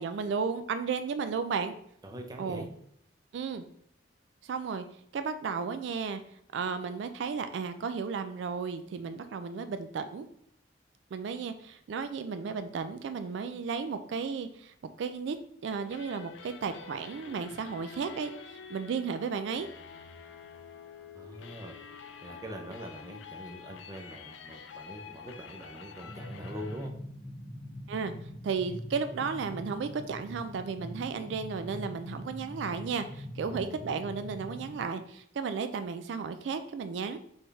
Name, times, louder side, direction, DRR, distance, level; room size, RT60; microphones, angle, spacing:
voice 1, 0.0-1.7 2.4-2.7 3.3-3.6 4.4-4.9 5.1-6.2 6.5-10.2 11.1-15.4 15.6-19.7 27.9-28.1 28.4-37.2, right 5 dB, 75° right, 9 dB, 0.3 m, -34 dB
voice 2, 2.0-2.7 21.1-21.8 22.2-26.9 33.4-33.8, equal, 20° right, 3 dB, 0.5 m, -43 dB
sound 1, 15.8-26.9, left 6 dB, 85° left, 0.5 m, -48 dB
sound 2, 26.1-34.8, left 1 dB, 20° left, 1.1 m, -43 dB
4.3 x 3.4 x 3.2 m, 0.70 s
head